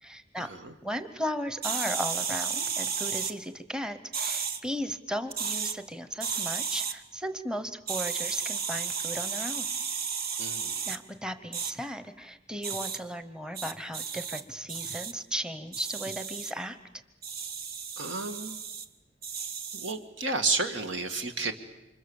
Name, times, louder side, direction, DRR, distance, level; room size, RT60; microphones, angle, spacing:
voice 1, 0.0-0.5 0.8-9.7 10.9-16.8, equal, 5° right, 10 dB, 1.0 m, -36 dB
sound 1, 1.6-3.3 4.1-4.6 5.3-5.7 6.2-6.9 7.9-11.0 11.5-11.7 12.6-13.0 13.5-14.4 14.7-15.1 15.7-16.5 17.2-18.8 19.2-20.0, right 6 dB, 55° right, 1.2 m, -33 dB
voice 2, 10.4-10.8 18.0-18.6 19.7-21.5, right 3 dB, 80° right, 7 dB, 2.1 m, -31 dB
29.0 x 25.5 x 7.2 m, 0.95 s
head